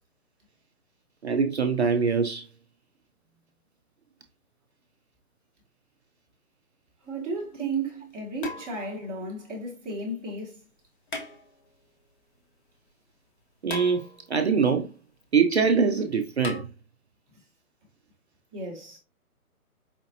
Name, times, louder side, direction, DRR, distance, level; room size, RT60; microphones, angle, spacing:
voice 1, 1.2-2.5 13.6-14.0 14.3-14.9 15.3-16.7, right 5 dB, 50° right, 0.5 m, -23 dB
sound 1, 7.0-7.1 8.4-9.1 11.1-11.9 13.7-14.5 16.4-16.6, left 3 dB, 35° left, 0.9 m, -38 dB
voice 2, 7.0-10.7 18.5-19.0, right 3 dB, ahead, 0.7 m, -33 dB
4.9 x 2.7 x 2.7 m
hypercardioid pair, 160°, 45 cm